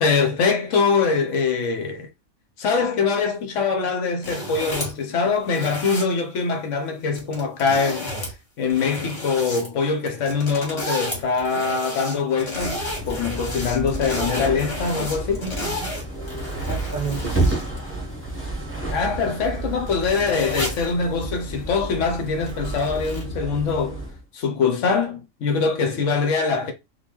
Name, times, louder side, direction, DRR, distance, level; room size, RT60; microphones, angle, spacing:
voice 1, 0.0-2.1 2.6-8.1 8.6-15.4 18.9-24.0 24.3-26.7, left 5 dB, 70° left, 1.0 m, -23 dB
sound 1, 4.2-5.0 5.4-6.0 7.1-8.3 8.6-9.7 10.1-17.8 18.4-18.5 19.5-19.6 19.9-20.9 22.5-23.2, left 1 dB, 50° left, 1.7 m, -32 dB
sound 2, 12.5-24.2, right 2 dB, 10° right, 0.8 m, -30 dB
voice 2, 14.9-16.0 16.7-17.6, right 4 dB, 55° right, 0.6 m, -33 dB
3.8 x 2.3 x 2.9 m
omnidirectional pair, 1.4 m